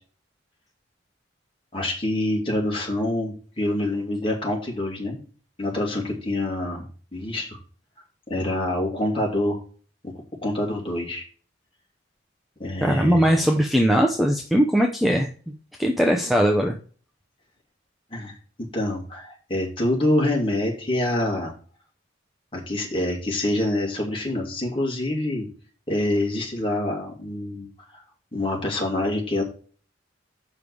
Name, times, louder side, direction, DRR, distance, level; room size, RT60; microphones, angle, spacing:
voice 1, 1.7-5.2 5.6-6.9 7.1-7.6 8.3-9.6 10.0-10.1 10.4-11.2 12.6-13.3 16.2-16.3 18.1-18.4 18.7-21.5 22.5-25.5 25.9-27.7 28.3-29.4, left 1 dB, 30° left, -1 dB, 2.6 m, -26 dB
voice 2, 12.8-15.3 15.8-16.8, equal, ahead, 1 dB, 0.6 m, -20 dB
6.9 x 5.6 x 4.8 m, 0.41 s
head